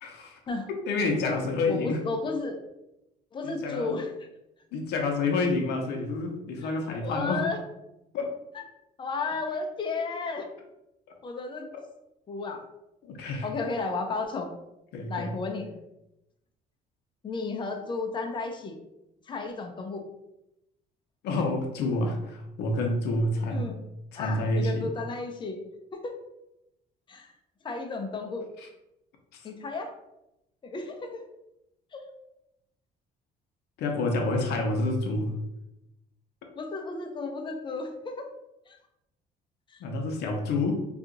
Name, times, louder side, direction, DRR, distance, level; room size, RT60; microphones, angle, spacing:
voice 1, 0.0-0.4 0.9-2.0 3.4-3.9 4.7-7.5 8.1-8.4 11.7-11.8 13.1-13.5 14.9-15.3 21.2-23.7 24.1-24.9 33.8-35.3 39.8-40.8, left 2 dB, 75° left, 2 dB, 0.6 m, -28 dB
voice 2, 1.7-2.6 3.3-4.3 6.6-6.7 7.0-7.6 8.5-8.6 9.0-10.5 11.2-11.7 12.3-12.6 13.4-14.5 15.1-15.7 17.2-18.8 19.3-20.1 23.5-23.8 24.2-25.6 25.9-26.2 27.1-27.3 27.6-28.5 29.4-29.9 30.6-31.2 31.9-32.1 36.6-38.3 38.7-38.8 39.7-39.8, left 3 dB, 30° left, 3 dB, 0.5 m, -33 dB
2.8 x 2.4 x 3.8 m, 0.90 s
cardioid pair, 110°, 17 cm